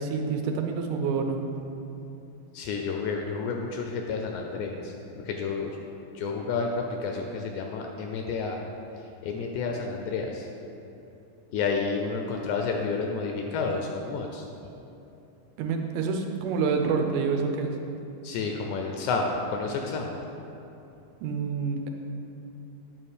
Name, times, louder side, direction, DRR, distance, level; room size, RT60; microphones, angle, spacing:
voice 1, 0.0-1.4 15.6-17.7 21.2-21.9, right 5 dB, 85° right, 4 dB, 2.2 m, -27 dB
voice 2, 2.5-5.8 6.2-8.6 9.2-10.5 11.5-14.5 18.2-20.1, left 4 dB, 80° left, 2 dB, 1.8 m, -30 dB
9.0 x 3.0 x 6.4 m, 2.8 s
omnidirectional pair, 3.6 m